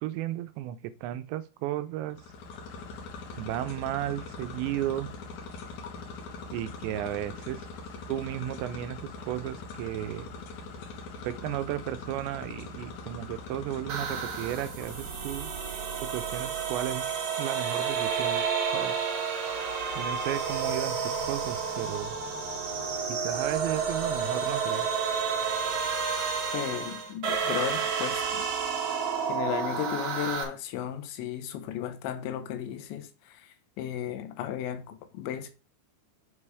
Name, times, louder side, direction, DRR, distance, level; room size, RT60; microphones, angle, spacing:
voice 1, 0.0-2.2 3.4-5.1 6.5-7.6 8.1-10.3 11.2-15.5 16.0-18.4 18.7-19.0 20.0-22.2 23.1-24.9, right 13 dB, 85° right, 2.9 m, -34 dB
sound 1, 2.1-15.5, left 4 dB, 60° left, 2.2 m, -42 dB
sound 2, 13.9-30.4, right 6 dB, 55° right, 2.5 m, -30 dB
voice 2, 26.5-28.4 29.3-33.4 33.8-35.5, left 10 dB, 85° left, 3.3 m, -35 dB
7.6 x 5.5 x 4.8 m
omnidirectional pair, 5.1 m